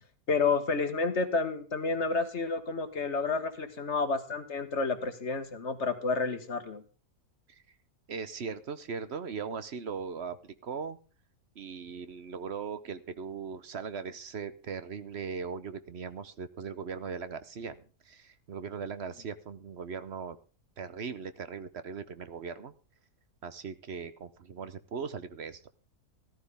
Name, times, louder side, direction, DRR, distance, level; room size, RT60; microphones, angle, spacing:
voice 1, 0.3-6.8, left 4 dB, 50° left, 9 dB, 1.5 m, -30 dB
voice 2, 8.1-11.0 11.6-17.8 18.0-20.4 20.8-22.7 23.4-25.6, right 6 dB, 50° right, 13 dB, 1.0 m, -39 dB
14.0 x 14.0 x 3.5 m, 0.36 s
omnidirectional pair, 1.6 m